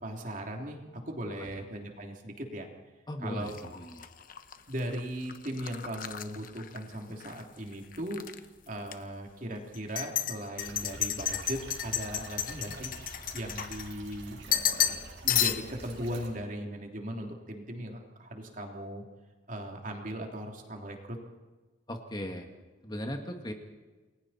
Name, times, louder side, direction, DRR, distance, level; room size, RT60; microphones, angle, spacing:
voice 1, 0.0-2.7 3.2-3.6 4.7-19.0 19.5-21.2, equal, 45° right, 1 dB, 3.2 m, -38 dB
voice 2, 3.1-4.1 21.9-22.5 22.8-23.5, equal, 20° left, 4 dB, 1.9 m, -38 dB
sound 1, 3.5-7.4 7.7-8.4 8.9-9.0 9.7-14.1 14.5-15.0 15.3-15.9, left 10 dB, 45° left, 1.1 m, -32 dB
sound 2, 10.6-16.3, right 2 dB, 85° right, 5.7 m, -47 dB
29.0 x 21.5 x 4.4 m, 1.3 s
head